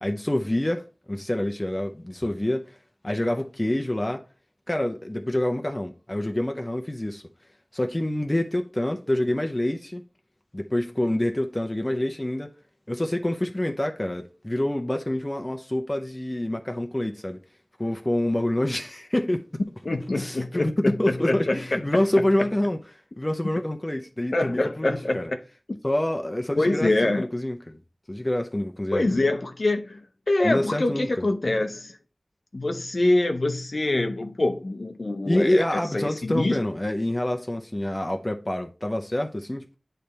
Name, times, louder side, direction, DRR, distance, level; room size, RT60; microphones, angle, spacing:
voice 1, 0.0-2.8 3.0-4.2 4.7-7.3 7.7-10.0 10.5-12.5 12.9-17.4 17.8-19.5 20.1-25.3 25.8-26.9 27.2-27.8 28.1-29.0 30.4-31.2 35.2-39.8, left 1 dB, 25° left, 0.7 m, -27 dB
voice 2, 19.8-21.8 24.3-25.4 26.6-27.3 28.9-30.0 30.3-32.0 32.5-35.6 35.9-36.6, left 2 dB, 65° left, 0.6 m, -25 dB
8.6 x 3.3 x 4.1 m
wide cardioid pair, 50°, 0 cm